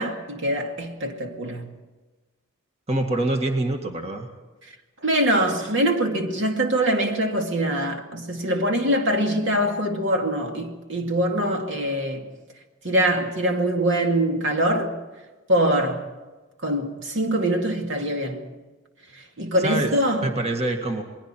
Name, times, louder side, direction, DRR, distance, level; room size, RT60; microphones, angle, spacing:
voice 1, 0.0-1.7 5.0-12.3 12.8-14.9 15.5-16.1 16.6-18.5 19.4-20.3, right 1 dB, 60° right, 2.4 m, -23 dB
voice 2, 2.9-4.3 19.6-19.9 20.2-21.0, right 2 dB, 30° right, 1.9 m, -25 dB
28.5 x 21.5 x 4.5 m
head